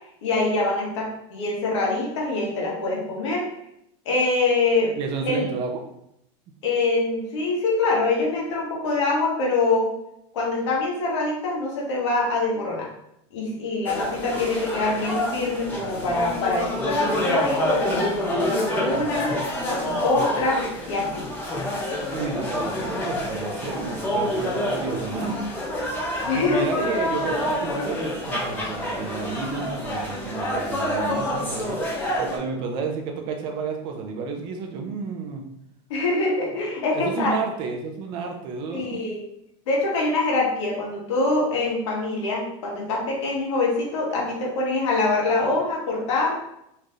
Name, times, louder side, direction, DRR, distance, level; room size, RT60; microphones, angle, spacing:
voice 1, 0.2-3.4 4.0-4.9 5.2-5.5 6.6-9.9 10.3-12.9 13.3-19.3 19.7-21.3 26.3-26.9 35.9-37.3 38.7-39.2 39.7-46.3, left 3 dB, 85° left, -3 dB, 1.5 m, -24 dB
voice 2, 4.9-5.8 22.1-25.4 26.2-31.8 32.2-35.4 36.9-39.0, right 4 dB, 35° right, 3 dB, 0.5 m, -31 dB
sound 1, 13.8-32.4, left 1 dB, 15° left, 0.7 m, -27 dB
4.2 x 3.2 x 2.5 m, 0.78 s
supercardioid pair, 170°, 15 cm